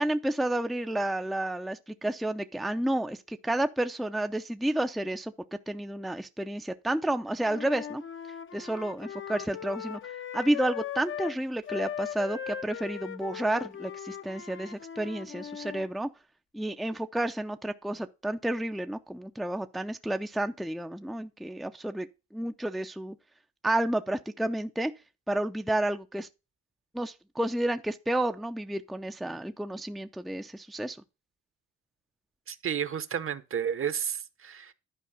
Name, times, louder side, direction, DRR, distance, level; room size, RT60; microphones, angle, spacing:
voice 1, 0.0-8.0 8.5-10.0 10.3-16.1 16.5-22.1 22.3-23.1 23.6-24.9 25.3-26.3 26.9-31.0, right 1 dB, ahead, 0.5 m, -31 dB
Wind instrument woodwind instrument, 7.4-11.4 11.7-15.9, left 9 dB, 40° left, 0.7 m, -39 dB
voice 2, 32.5-34.7, right 8 dB, 45° right, 0.9 m, -32 dB
11.0 x 4.7 x 5.6 m
cardioid pair, 90°, 30 cm